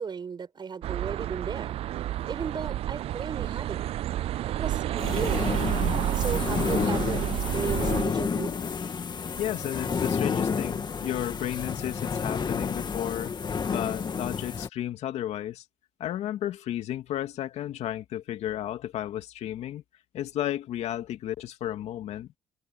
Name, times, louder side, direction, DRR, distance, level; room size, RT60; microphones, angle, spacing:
voice 1, 0.0-1.8 2.3-3.8 4.6-5.5 6.1-7.3 7.5-8.6, right 6 dB, 40° right, 5.4 m, -35 dB
sound 1, 0.8-8.0, right 13 dB, 60° right, 0.4 m, -30 dB
sound 2, 5.0-14.7, left 6 dB, 40° left, 2.5 m, -30 dB
voice 2, 9.4-13.3 13.7-15.6 16.0-19.8 20.1-22.3, left 12 dB, 70° left, 2.4 m, -33 dB
supercardioid pair, 70°, 12 cm